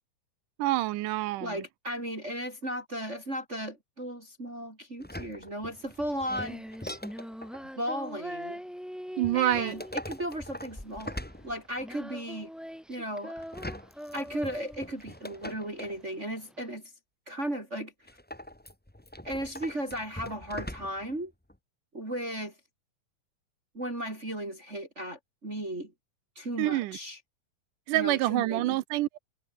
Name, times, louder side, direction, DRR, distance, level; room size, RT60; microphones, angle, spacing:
voice 1, 0.6-1.6 9.2-9.8 26.6-27.0 27.9-29.2, right 17 dB, 80° right, 2.3 m, -27 dB
voice 2, 1.4-6.6 7.8-8.6 9.3-12.5 12.9-13.4 14.1-16.9 17.3-17.9 19.2-21.3 21.9-22.5 23.7-25.9 26.4-27.2 27.9-28.8, equal, 20° right, 4.5 m, -35 dB
sound 1, 5.0-7.6 9.2-12.0 13.4-16.0 18.1-21.2 21.5-21.6, left 1 dB, 15° left, 0.3 m, -42 dB
Female singing, 5.7-16.7, equal, ahead, 4.2 m, -43 dB
omnidirectional pair, 3.7 m